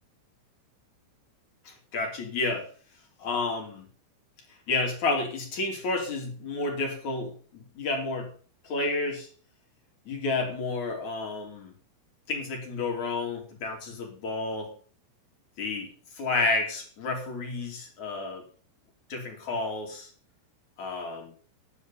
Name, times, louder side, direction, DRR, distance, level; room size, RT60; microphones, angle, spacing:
voice 1, 1.7-2.7 3.2-3.9 4.7-8.3 8.6-9.3 10.1-11.7 12.3-14.7 15.6-18.4 19.1-20.1 20.8-21.3, left 3 dB, 40° left, 1 dB, 3.4 m, -31 dB
10.0 x 8.3 x 7.0 m, 0.41 s
omnidirectional pair, 6.0 m